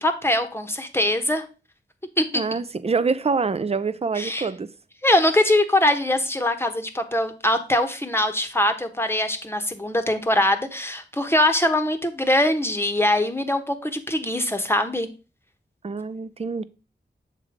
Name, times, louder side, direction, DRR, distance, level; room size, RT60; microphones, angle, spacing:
voice 1, 0.0-1.4 2.2-2.4 4.1-4.5 5.0-15.1, left 1 dB, 15° left, 1.0 m, -22 dB
voice 2, 2.3-4.7 15.8-16.6, right 4 dB, 35° right, 0.5 m, -25 dB
7.3 x 3.3 x 5.0 m
wide cardioid pair, 60°, 19 cm